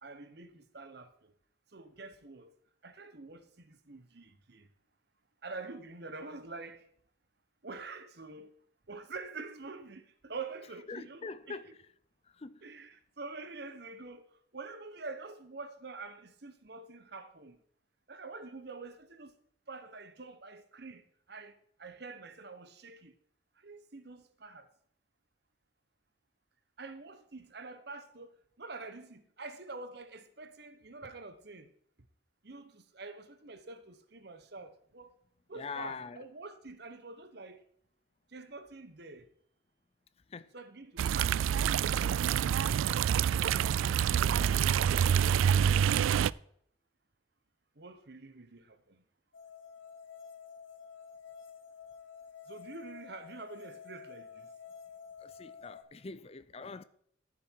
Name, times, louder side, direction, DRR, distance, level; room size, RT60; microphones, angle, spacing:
voice 1, 0.0-1.3 1.7-2.5 2.8-4.7 5.4-6.9 7.6-8.5 8.9-11.6 12.6-14.3 14.5-17.6 18.1-19.4 19.7-23.2 23.6-24.7 26.8-31.7 32.4-35.1 35.5-37.6 38.3-39.3 40.5-42.0 44.0-44.8 47.8-49.0 52.5-54.5, right 3 dB, 55° right, 1.1 m, -46 dB
voice 2, 10.9-11.8 12.2-12.7 35.5-36.2 40.3-40.5 55.2-56.8, left 4 dB, 30° left, 0.5 m, -43 dB
sound 1, 41.0-46.3, right 8 dB, 90° right, 0.3 m, -27 dB
sound 2, 49.3-55.8, left 6 dB, 85° left, 1.5 m, -50 dB
14.5 x 7.1 x 4.7 m
head